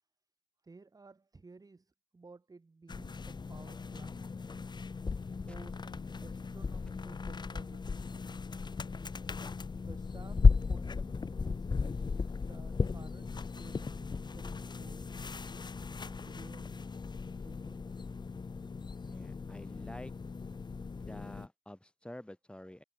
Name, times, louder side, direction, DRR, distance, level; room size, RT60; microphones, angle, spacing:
voice 1, 0.6-4.3 5.5-8.2 9.8-15.1 16.1-16.8 17.4-17.9, right 3 dB, 20° right, 0.9 m, -55 dB
sound 1, 2.9-21.5, left 4 dB, 20° left, 0.6 m, -35 dB
voice 2, 19.0-20.1 21.0-22.8, left 1 dB, 5° left, 3.7 m, -48 dB
cardioid pair, 90°, 20 cm